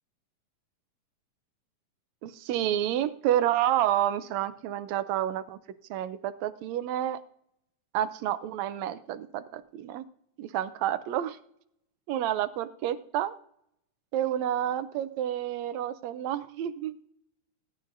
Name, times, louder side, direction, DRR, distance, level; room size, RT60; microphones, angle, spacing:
voice 1, 2.2-5.6 5.9-7.2 7.9-10.0 10.4-11.4 12.1-13.3 14.1-17.0, right 11 dB, 75° right, 12 dB, 1.7 m, -29 dB
20.0 x 11.0 x 2.6 m, 0.72 s
omnidirectional pair, 3.6 m